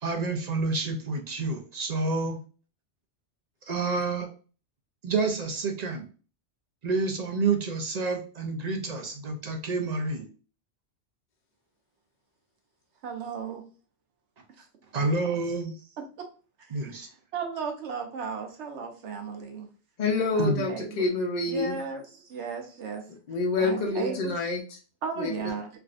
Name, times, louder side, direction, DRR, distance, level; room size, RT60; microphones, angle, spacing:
voice 1, 0.0-2.4 3.7-4.3 5.0-6.1 6.8-10.3 14.9-15.8 16.7-17.1 20.4-20.7, right 3 dB, 50° right, 4 dB, 0.5 m, -28 dB
voice 2, 13.0-13.6 15.0-15.1 17.3-19.7 20.3-21.1 21.5-23.0 23.6-24.2 25.0-25.7, right 6 dB, 80° right, 4 dB, 1.0 m, -35 dB
voice 3, 20.0-21.8 23.3-24.6 25.2-25.3, left 3 dB, 50° left, 1 dB, 0.6 m, -27 dB
3.4 x 2.5 x 2.4 m, 0.37 s
omnidirectional pair, 1.2 m